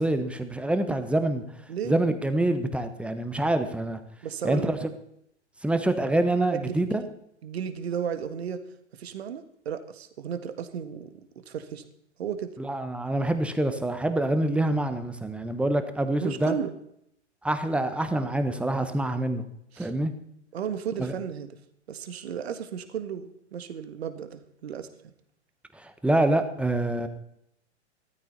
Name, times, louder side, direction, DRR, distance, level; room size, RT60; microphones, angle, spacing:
voice 1, 0.0-1.4 1.8-4.0 4.4-4.9 5.6-7.0 12.6-16.6 17.4-19.4 19.8-20.1 21.0-21.1 25.7-27.1, right 1 dB, 5° right, 9 dB, 1.3 m, -26 dB
voice 2, 4.2-4.7 6.5-6.8 7.4-8.6 8.9-11.2 11.5-11.8 12.2-12.5 16.2-16.7 19.7-19.9 20.5-21.6 21.9-25.1, right 8 dB, 60° right, 10 dB, 1.8 m, -34 dB
16.5 x 14.0 x 4.1 m, 0.73 s
figure-of-eight pair, 105°, 36 cm